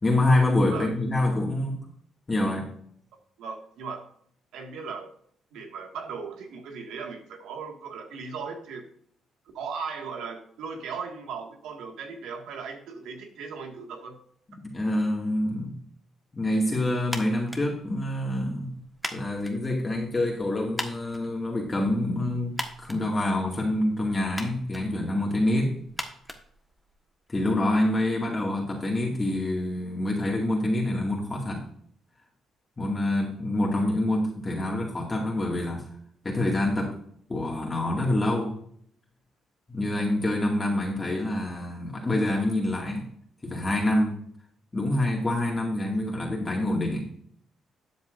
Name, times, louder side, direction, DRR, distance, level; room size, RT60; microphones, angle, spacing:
voice 1, 0.0-1.8 2.3-2.7 14.7-15.8 16.3-18.8 19.1-25.8 27.3-31.6 32.8-35.8 36.2-36.9 37.3-38.6 39.7-43.1 43.4-44.1 44.7-47.1, left 1 dB, 25° left, -1 dB, 2.2 m, -26 dB
voice 2, 3.4-4.1 4.5-5.1 5.5-8.9 9.5-14.2, right 5 dB, 85° right, 3 dB, 1.9 m, -37 dB
sound 1, 17.0-27.2, equal, ahead, 1.5 m, -41 dB
12.5 x 8.2 x 2.6 m, 0.62 s
cardioid pair, 90°, 0 cm